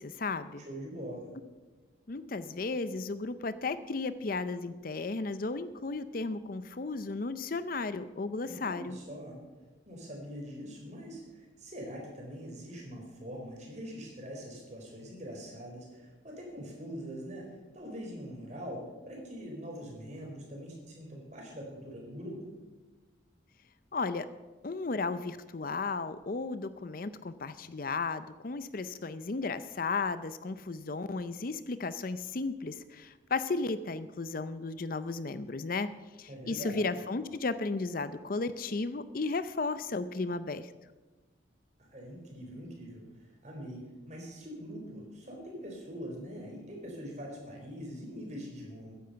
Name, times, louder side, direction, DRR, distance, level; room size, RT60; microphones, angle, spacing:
voice 1, 0.0-0.6 2.1-9.0 23.9-24.3 24.6-35.9 36.2-40.7, left 3 dB, 45° left, 13 dB, 0.5 m, -34 dB
voice 2, 0.7-1.3 8.4-9.4 9.9-22.4 36.3-36.8 41.9-48.9, equal, 35° right, 0 dB, 4.4 m, -43 dB
14.5 x 10.5 x 5.8 m, 1.2 s
head